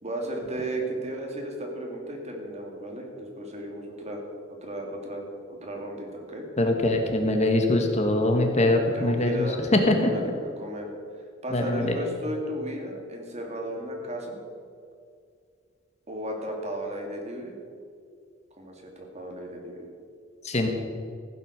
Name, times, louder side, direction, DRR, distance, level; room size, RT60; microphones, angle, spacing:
voice 1, 0.0-4.2 4.6-6.5 8.5-10.2 10.6-10.9 11.4-14.4 16.1-17.6 18.6-19.9, right 1 dB, 35° right, 0 dB, 2.4 m, -35 dB
voice 2, 6.6-10.1 11.5-11.9 20.4-20.7, left 1 dB, 35° left, 4 dB, 1.3 m, -23 dB
15.0 x 7.9 x 6.4 m, 2.2 s
head